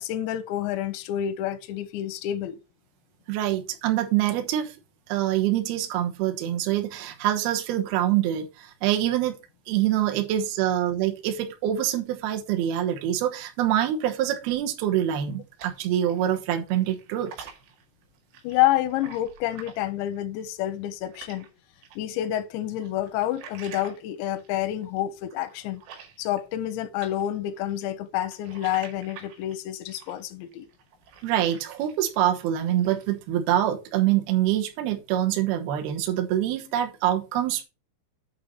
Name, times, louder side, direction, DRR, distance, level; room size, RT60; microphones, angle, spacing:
voice 1, 0.0-2.6 18.4-21.5 22.0-25.8 26.2-30.7, left 12 dB, 85° left, 2.8 m, -28 dB
voice 2, 3.3-4.8 5.1-9.4 9.7-17.5 31.2-37.6, right 12 dB, 70° right, 2.6 m, -25 dB
sound 1, 15.1-16.4 16.6-21.5 21.8-26.7 27.0-32.1 32.5-33.2, right 7 dB, 85° right, 4.4 m, -48 dB
8.8 x 3.7 x 6.7 m
omnidirectional pair, 5.5 m